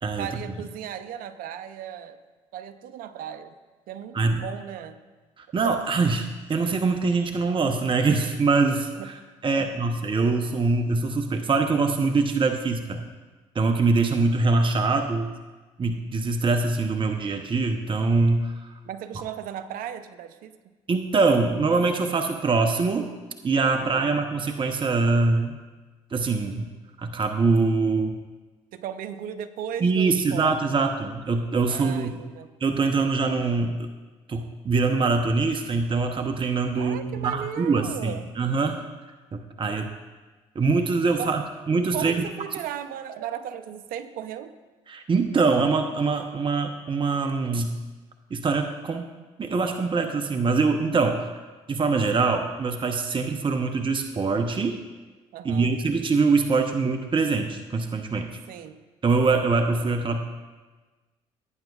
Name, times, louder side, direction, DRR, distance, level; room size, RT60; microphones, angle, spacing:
voice 1, 0.2-2.2 2.5-3.6 3.9-5.0 9.0-9.1 9.6-9.7 18.8-20.6 23.8-24.2 24.5-24.9 28.7-30.9 31.7-32.5 36.8-38.4 41.2-41.3 41.9-44.5 55.3-55.8 58.5-58.8, right 9 dB, 70° right, 11 dB, 0.7 m, -36 dB
voice 2, 5.4-9.1 9.4-13.0 13.5-15.3 15.8-18.5 20.9-23.1 23.4-25.5 26.1-26.6 27.0-28.1 29.8-32.1 32.6-33.9 34.3-38.9 39.3-39.9 40.5-41.4 41.7-42.2 44.9-47.7 48.3-49.1 49.4-51.3 51.7-54.8 55.4-58.3 59.0-60.2, right 4 dB, 35° right, 5 dB, 0.8 m, -23 dB
16.5 x 9.0 x 2.4 m, 1.3 s
supercardioid pair, 65°, 15 cm